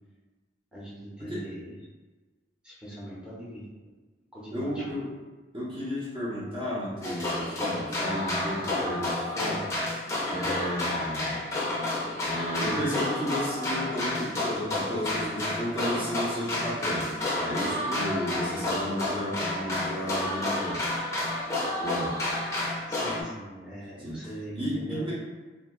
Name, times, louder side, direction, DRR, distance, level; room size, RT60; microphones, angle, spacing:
voice 1, 0.7-1.7 2.6-3.7 4.3-4.8 22.9-25.0, equal, 5° right, -9 dB, 0.9 m, -41 dB
voice 2, 4.5-5.1 5.5-9.8 10.2-11.4 12.2-20.8 21.8-22.2 24.0-24.2 24.5-25.1, equal, 30° right, -10 dB, 0.8 m, -33 dB
sound 1, 7.0-23.2, left 1 dB, 15° left, 0.6 m, -30 dB
2.8 x 2.4 x 3.0 m, 1.3 s
head